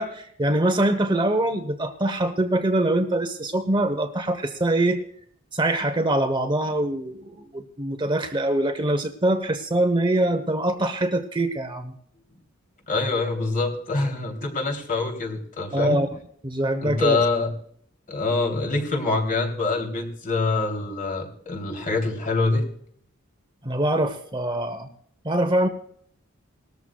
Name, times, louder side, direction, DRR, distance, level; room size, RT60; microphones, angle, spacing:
voice 1, 0.0-5.0 5.5-11.9 15.7-16.1 16.4-17.2 23.6-24.9 25.2-25.7, right 1 dB, 25° right, 7 dB, 1.0 m, -23 dB
voice 2, 12.9-16.0 16.8-17.5 18.1-22.6, left 3 dB, 40° left, 2 dB, 3.3 m, -25 dB
20.0 x 13.5 x 2.4 m, 0.64 s
head